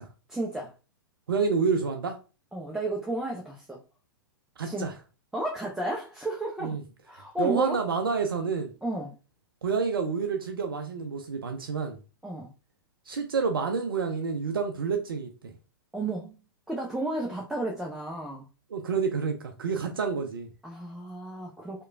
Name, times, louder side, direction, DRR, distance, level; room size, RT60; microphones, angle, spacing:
voice 1, 0.3-0.7 2.5-3.8 4.6-4.9 5.3-6.8 7.1-7.8 8.8-9.2 12.2-12.5 15.9-16.4 16.7-18.5 20.6-21.8, right 2 dB, 5° right, 0.4 m, -32 dB
voice 2, 1.3-2.2 4.6-4.9 6.6-6.8 7.4-8.7 9.6-12.0 13.1-15.5 18.7-20.5, right 5 dB, 75° right, 0.4 m, -28 dB
2.9 x 2.2 x 2.4 m
figure-of-eight pair, 105°, 12 cm